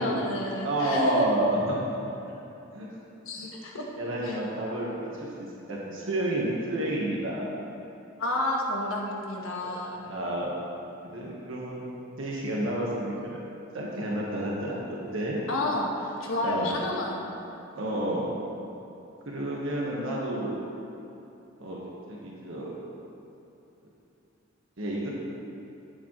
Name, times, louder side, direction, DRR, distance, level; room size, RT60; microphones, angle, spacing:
voice 1, 0.0-1.3 3.3-3.8 4.2-4.3 8.2-10.1 15.5-17.2, left 1 dB, 90° left, -1 dB, 1.4 m, -30 dB
voice 2, 0.6-1.8 2.7-2.9 3.4-3.5 4.0-7.4 9.6-10.5 11.0-11.8 12.2-13.4 13.7-15.4 16.4-16.7 17.7-18.3 19.2-20.6 21.6-21.8 22.1-22.8 24.8-25.1, right 1 dB, 70° right, -4 dB, 1.4 m, -30 dB
11.0 x 8.9 x 3.2 m, 2.9 s
head